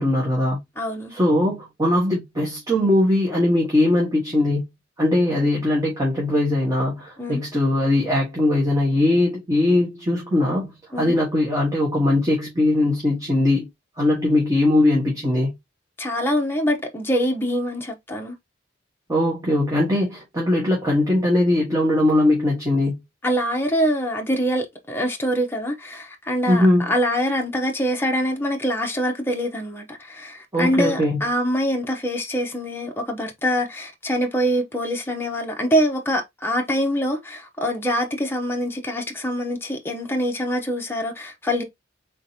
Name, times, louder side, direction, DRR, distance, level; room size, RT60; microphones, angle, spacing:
voice 1, 0.0-0.6 1.1-4.7 5.0-13.7 14.0-15.6 19.1-23.0 26.5-26.9 30.5-31.2, left 1 dB, 20° right, 1.4 m, -20 dB
voice 2, 0.8-1.1 7.2-7.4 10.9-11.1 16.0-18.4 23.2-41.6, equal, 10° left, 0.8 m, -24 dB
3.7 x 3.6 x 2.7 m
head